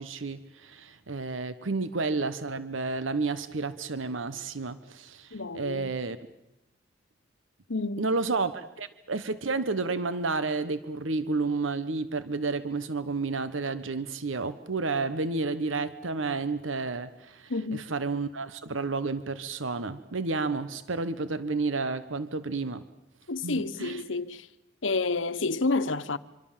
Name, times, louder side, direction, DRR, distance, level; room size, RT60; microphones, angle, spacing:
voice 1, 0.0-6.2 8.0-22.8 23.4-24.0, right 3 dB, 85° right, 1.1 m, -31 dB
voice 2, 5.3-5.9 7.7-8.1 17.5-17.9 23.3-24.5 24.8-26.2, left 3 dB, 80° left, 1.2 m, -29 dB
25.5 x 25.0 x 7.5 m
head